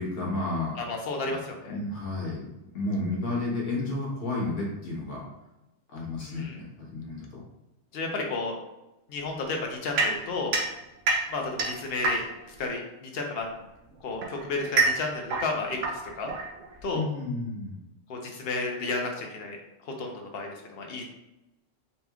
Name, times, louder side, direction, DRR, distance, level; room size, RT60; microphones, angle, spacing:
voice 1, 0.0-0.8 1.7-2.5 2.7-5.2 5.9-7.4 16.9-17.8, left 2 dB, 75° left, -4 dB, 1.5 m, -31 dB
voice 2, 0.8-1.8 6.2-6.6 7.9-8.6 9.1-10.6 11.3-12.2 12.5-13.5 14.0-16.3 16.8-17.0 18.1-19.6 19.8-21.0, left 3 dB, 55° left, 1 dB, 0.8 m, -32 dB
sound 1, 10.0-12.6 13.6-17.0, right 3 dB, 75° right, 1.0 m, -28 dB
4.1 x 2.9 x 2.3 m, 0.94 s
omnidirectional pair, 1.3 m